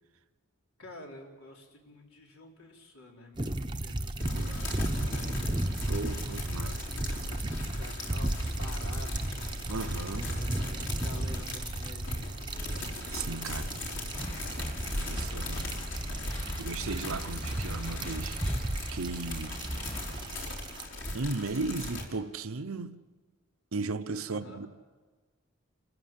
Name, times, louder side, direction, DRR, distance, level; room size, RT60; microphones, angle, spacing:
voice 1, 0.8-5.6 6.5-9.5 10.1-12.9 24.3-24.7, left 1 dB, 75° left, 4.0 m, -50 dB
sound 1, 3.4-20.8, right 1 dB, 20° right, 0.9 m, -35 dB
sound 2, 4.2-22.0, left 1 dB, 55° left, 4.7 m, -39 dB
voice 2, 4.2-4.6 5.9-6.8 9.7-10.3 13.1-13.7 14.9-15.8 16.6-18.4 18.9-19.6 21.1-23.0 23.7-24.7, right 3 dB, 75° right, 0.9 m, -36 dB
sound 3, 14.1-20.2, equal, 25° left, 2.3 m, -39 dB
28.0 x 15.0 x 7.6 m
head